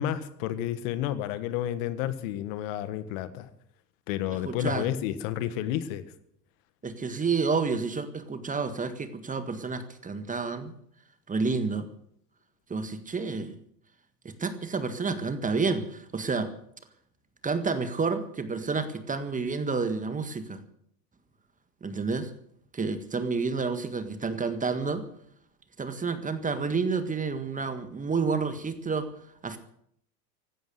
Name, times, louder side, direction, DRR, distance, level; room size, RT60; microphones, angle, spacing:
voice 1, 0.0-3.5 4.1-6.0, left 11 dB, 55° left, 12 dB, 1.6 m, -31 dB
voice 2, 4.4-4.9 6.8-10.7 11.3-11.9 12.7-13.5 14.2-16.5 17.4-20.6 21.8-22.3 22.7-25.0 25.8-29.1 29.4-29.6, right 4 dB, 15° right, 10 dB, 1.7 m, -29 dB
16.0 x 12.0 x 6.6 m, 0.69 s
hypercardioid pair, 90°, 48 cm